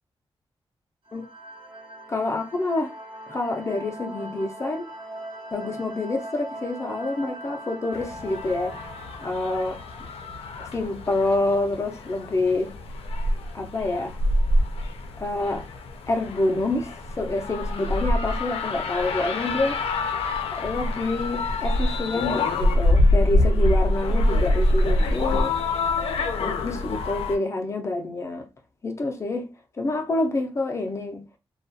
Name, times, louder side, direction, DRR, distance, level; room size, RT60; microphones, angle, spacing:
sound 1, 1.0-11.4, right 1 dB, 55° right, 1.1 m, -40 dB
voice 1, 2.1-2.9 3.3-4.9 5.5-8.8 9.2-10.1 10.6-12.7 13.5-14.2 15.2-15.7 16.1-19.8 20.5-25.5 26.4-28.5 28.8-29.5 29.8-31.2, left 2 dB, 30° left, 0.5 m, -27 dB
sound 2, 7.9-27.4, left 1 dB, 85° left, 0.5 m, -25 dB
2.3 x 2.3 x 2.6 m
wide cardioid pair, 135°, 10 cm